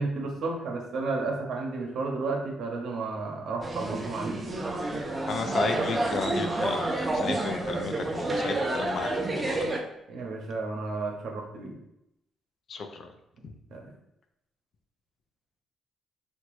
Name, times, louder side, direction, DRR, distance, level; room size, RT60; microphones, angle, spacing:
voice 1, 0.0-4.6 10.1-11.8 13.7-13.9, right 3 dB, 70° right, 1 dB, 0.6 m, -32 dB
sound 1, 3.6-9.8, right 2 dB, 30° right, 0.4 m, -29 dB
voice 2, 5.3-9.7 12.7-13.1 13.4-13.5, left 4 dB, 55° left, 5 dB, 0.4 m, -33 dB
2.9 x 2.2 x 3.1 m, 0.83 s
cardioid pair, 90°, 0 cm